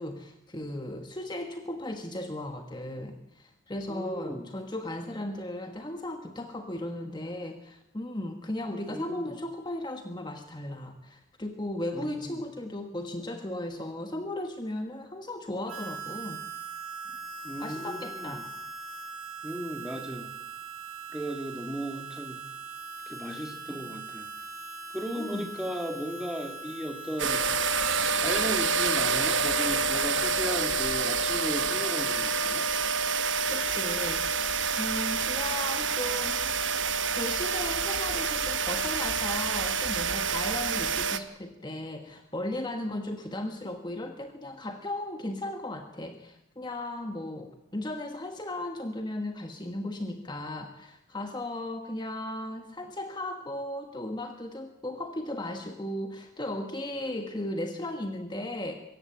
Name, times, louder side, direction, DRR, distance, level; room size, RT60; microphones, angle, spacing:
voice 1, 0.0-16.4 17.6-18.5 25.1-25.5 33.5-36.6 37.1-58.7, left 1 dB, 20° left, 5 dB, 1.4 m, -36 dB
voice 2, 3.9-4.5 8.9-9.4 11.9-12.4 17.4-18.4 19.4-20.3 21.1-22.4 23.1-24.3 24.9-27.5 28.1-32.7, equal, 5° right, 5 dB, 2.2 m, -36 dB
Harmonica, 15.7-28.1, right 4 dB, 90° right, 2.8 m, -41 dB
sound 1, 27.2-41.2, right 5 dB, 60° right, 1.0 m, -28 dB
24.0 x 14.0 x 8.9 m, 0.88 s
head